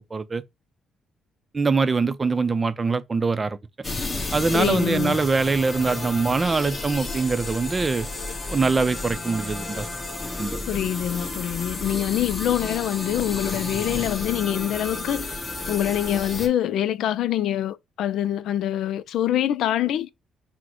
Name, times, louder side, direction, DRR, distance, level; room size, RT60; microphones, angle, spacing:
voice 1, 0.1-0.4 1.5-3.6 4.3-8.1 8.5-9.9 10.4-10.6, right 4 dB, 30° right, 0.5 m, -23 dB
sound 1, 3.8-16.5, left 2 dB, 25° left, 1.2 m, -32 dB
voice 2, 4.5-5.2 10.7-20.1, left 11 dB, 80° left, 0.3 m, -25 dB
6.0 x 2.1 x 3.0 m
cardioid pair, 90°, 0 cm